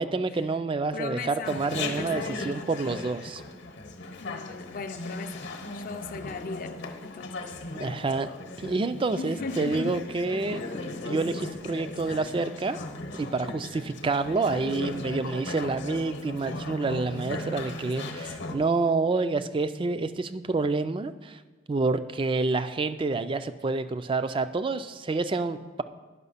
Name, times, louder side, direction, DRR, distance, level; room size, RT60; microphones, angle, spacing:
voice 1, 0.0-3.4 7.7-8.3 8.6-10.6 11.0-12.8 13.1-21.4 21.7-25.8, right 3 dB, 25° right, 0.3 m, -28 dB
voice 2, 0.9-2.3 4.2-7.5 9.2-10.0, left 4 dB, 45° left, 0.5 m, -38 dB
Chatter, 1.4-18.6, left 2 dB, 60° left, 0.9 m, -37 dB
9.4 x 5.9 x 5.6 m
head